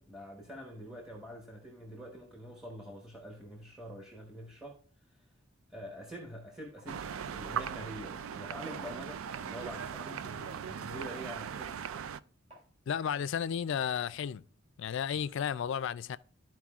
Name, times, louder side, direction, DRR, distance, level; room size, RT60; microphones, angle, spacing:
voice 1, 0.0-4.8 5.1-5.2 5.7-11.8, equal, 5° right, 1.0 m, -46 dB
sound 1, 6.8-6.9 7.4-7.7 8.1-9.6 10.0-10.1 10.7-10.9 11.3-11.6 11.9-12.1 12.5-12.7 13.1-13.3 13.6-15.5, right 1 dB, 35° right, 3.5 m, -59 dB
sound 2, 6.9-12.2, right 8 dB, 90° right, 0.4 m, -39 dB
voice 2, 12.9-14.4 14.8-16.2, left 8 dB, 65° left, 0.4 m, -33 dB
13.0 x 4.6 x 2.4 m
head